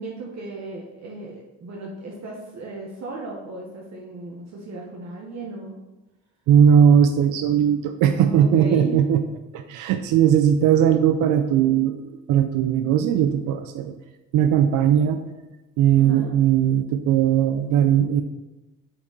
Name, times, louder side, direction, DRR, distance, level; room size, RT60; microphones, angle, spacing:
voice 1, 0.0-5.8 8.2-9.1 15.9-16.4, right 2 dB, 60° right, -2 dB, 1.1 m, -36 dB
voice 2, 6.5-9.2 9.5-13.9 14.3-15.2 15.8-18.2, right 9 dB, 85° right, 8 dB, 0.5 m, -18 dB
5.6 x 4.5 x 4.0 m, 1.0 s
cardioid pair, 90°, 30 cm